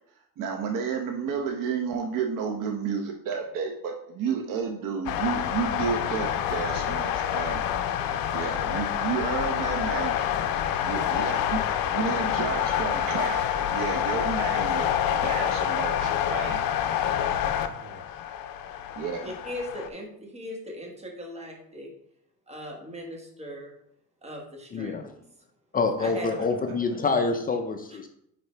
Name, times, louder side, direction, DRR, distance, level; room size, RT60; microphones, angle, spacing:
voice 1, 0.4-7.6 8.3-10.1 10.8-11.6 11.9-14.9 15.2-16.6 16.9-17.1 19.0-19.2, right 6 dB, 65° right, 3 dB, 0.8 m, -31 dB
sound 1, 5.1-19.9, left 10 dB, 70° left, 0.6 m, -27 dB
voice 2, 10.8-11.3 16.9-18.2 26.1-26.5 26.9-27.3, right 3 dB, 85° right, 0 dB, 1.9 m, -47 dB
voice 3, 19.2-21.9 22.5-23.7 24.2-25.1 26.0-26.3, equal, 20° right, 0 dB, 1.5 m, -39 dB
voice 4, 24.7-25.0 25.7-28.1, left 4 dB, 25° left, 5 dB, 0.5 m, -26 dB
9.4 x 3.9 x 3.3 m, 0.73 s
cardioid pair, 150°, 36 cm